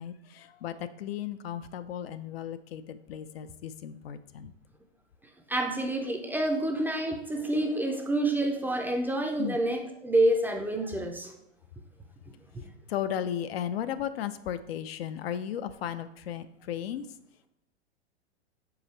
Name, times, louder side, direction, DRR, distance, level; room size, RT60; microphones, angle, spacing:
voice 1, 0.0-4.5 9.4-9.6 12.9-17.1, left 10 dB, 65° left, 11 dB, 0.5 m, -35 dB
voice 2, 5.5-11.3, right 1 dB, 5° right, 3 dB, 0.5 m, -28 dB
6.3 x 4.6 x 3.2 m, 0.81 s
hypercardioid pair, 105°, 33 cm